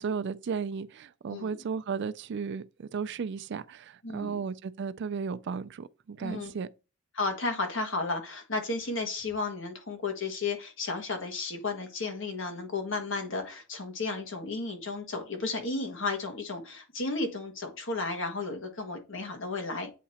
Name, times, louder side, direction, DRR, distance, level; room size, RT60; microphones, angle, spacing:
voice 1, 0.0-6.7, right 5 dB, 60° right, 0.4 m, -34 dB
voice 2, 4.0-4.4 6.2-6.5 7.1-19.9, left 3 dB, 65° left, 1.5 m, -33 dB
8.4 x 2.8 x 4.2 m
head